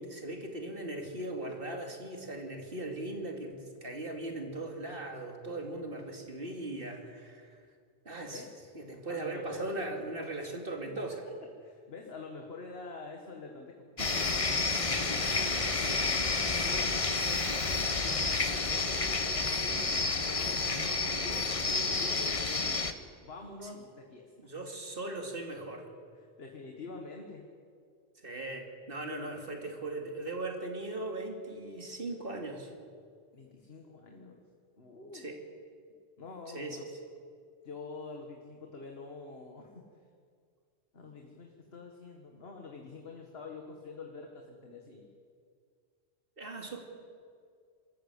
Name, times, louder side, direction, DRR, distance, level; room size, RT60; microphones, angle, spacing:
voice 1, 0.0-7.6 8.0-8.4 8.7-11.2 23.6-23.7 24.4-25.9 28.2-32.7 35.1-35.4 36.5-36.9 46.4-46.8, right 2 dB, 50° right, 3 dB, 2.9 m, -39 dB
voice 2, 9.1-10.0 10.8-11.0 11.6-15.4 15.8-17.7 18.0-21.5 21.9-22.9 23.2-24.3 26.2-27.4 29.1-29.6 33.3-34.4 34.8-35.2 36.2-36.8 37.6-39.8 40.9-45.1, left 3 dB, 55° left, 2 dB, 2.0 m, -46 dB
sound 1, 14.0-22.9, left 3 dB, 30° left, 1.0 m, -30 dB
Musical instrument, 14.0-22.5, right 2 dB, 80° right, 1.9 m, -47 dB
25.5 x 14.0 x 8.4 m, 2.2 s
omnidirectional pair, 1.2 m